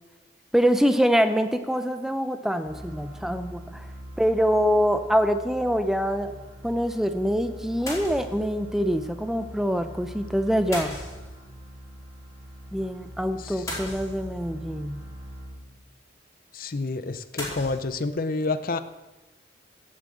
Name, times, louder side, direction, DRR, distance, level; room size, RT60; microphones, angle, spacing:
voice 1, 0.5-3.9 4.2-6.3 6.6-11.0 12.7-15.0, equal, ahead, 9 dB, 0.6 m, -24 dB
sound 1, 2.6-16.0, equal, 20° right, 2.1 m, -42 dB
sound 2, 7.9-8.5 10.7-11.6 13.7-14.6 17.4-17.8, left 1 dB, 15° left, 4.5 m, -36 dB
voice 2, 16.5-18.8, left 3 dB, 50° left, 12 dB, 0.6 m, -29 dB
15.5 x 7.5 x 7.8 m, 1.2 s
head